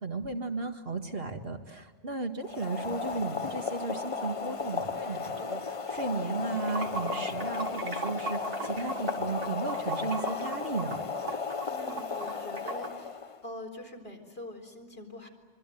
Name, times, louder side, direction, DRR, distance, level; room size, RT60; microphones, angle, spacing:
voice 1, 0.0-11.0, right 3 dB, 55° right, 4 dB, 2.1 m, -35 dB
Boiling, 2.4-13.4, left 5 dB, 30° left, 0.9 m, -35 dB
Water / Sink (filling or washing), 6.4-12.9, right 3 dB, 85° right, 2.4 m, -39 dB
voice 2, 11.7-13.1 13.4-15.3, left 1 dB, 55° left, 2 dB, 4.5 m, -43 dB
25.5 x 24.0 x 9.2 m, 1.4 s
omnidirectional pair, 1.2 m